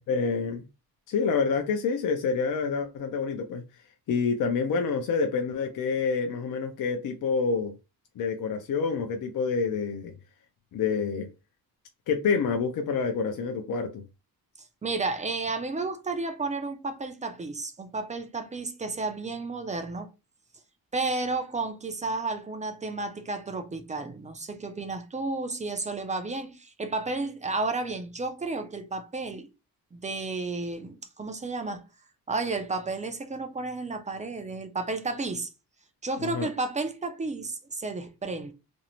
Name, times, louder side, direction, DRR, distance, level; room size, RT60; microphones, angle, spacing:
voice 1, 0.1-0.7 1.1-3.6 4.1-7.7 8.2-10.1 10.7-11.3 12.1-14.0 36.2-36.5, left 5 dB, 55° left, 0.5 m, -27 dB
voice 2, 14.8-20.1 20.9-29.5 29.9-31.9 32.3-35.5 36.0-38.5, right 3 dB, 20° right, 0.3 m, -32 dB
2.6 x 2.0 x 2.9 m
cardioid pair, 115°, 38 cm